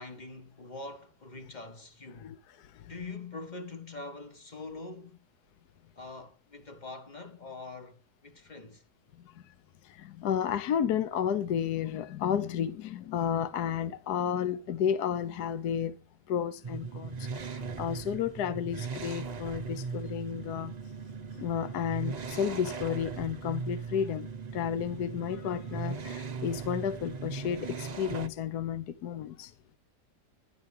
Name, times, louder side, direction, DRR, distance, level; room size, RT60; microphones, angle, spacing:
voice 1, 0.0-2.3 2.9-5.2 6.0-8.8, left 3 dB, 25° left, 1.4 m, -44 dB
voice 2, 2.2-2.9 9.2-9.5 9.8-16.0 16.3-20.7 21.3-29.5, left 8 dB, 70° left, 1.3 m, -32 dB
sound 1, 16.6-28.3, right 5 dB, 40° right, 0.6 m, -38 dB
15.5 x 12.0 x 3.6 m
omnidirectional pair, 1.8 m